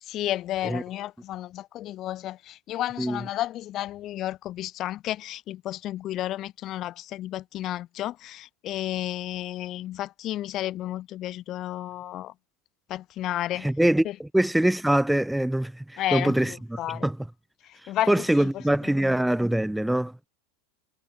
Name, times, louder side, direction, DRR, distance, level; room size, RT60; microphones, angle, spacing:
voice 1, 0.0-12.3 12.9-13.7 14.0-14.1 16.0-17.1 17.6-18.5 19.1-19.2, left 14 dB, 40° left, 1.7 m, -32 dB
voice 2, 13.5-17.3 17.8-20.3, right 1 dB, 5° right, 2.1 m, -24 dB
hypercardioid pair, 115°, 0 cm